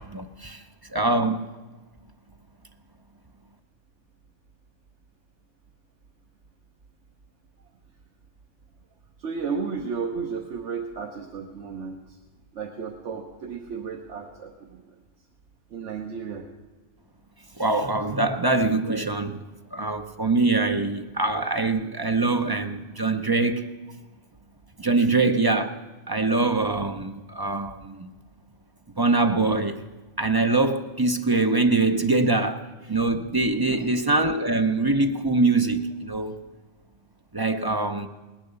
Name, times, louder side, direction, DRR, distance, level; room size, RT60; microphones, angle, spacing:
voice 1, 0.1-0.6 0.9-1.5 17.6-19.4 19.7-23.7 24.8-25.8 26.1-28.1 29.0-29.8 30.2-32.6 32.9-36.4 37.3-38.1, right 3 dB, 25° right, 0.5 m, -23 dB
voice 2, 9.2-12.2 12.5-15.0 15.7-16.5 33.5-33.9, right 5 dB, 65° right, 1.2 m, -33 dB
18.5 x 10.5 x 6.8 m
omnidirectional pair, 1.3 m